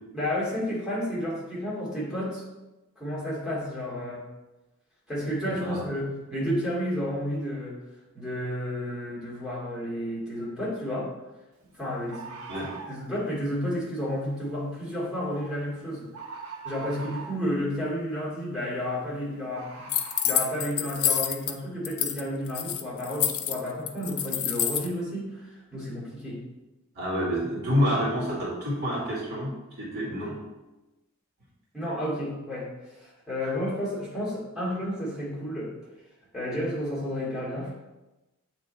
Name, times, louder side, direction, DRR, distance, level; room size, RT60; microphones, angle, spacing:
voice 1, 0.1-2.4 3.0-4.2 5.1-7.8 8.1-11.1 11.7-12.3 12.9-16.1 16.6-19.9 20.2-26.4 31.7-35.7 36.3-37.7, equal, ahead, -8 dB, 2.3 m, -31 dB
voice 2, 5.4-5.8 12.5-12.7 27.0-29.5 29.8-30.4 33.4-33.5, equal, 50° right, -7 dB, 2.2 m, -28 dB
Bird, 10.4-10.5 12.1-13.0 15.3-15.6 16.1-17.5 19.5-20.4, right 4 dB, 70° right, 0.9 m, -41 dB
sound 1, 19.9-21.5 21.8-22.2 22.5-24.9, left 10 dB, 70° left, 0.5 m, -27 dB
8.4 x 3.3 x 4.1 m, 1.0 s
head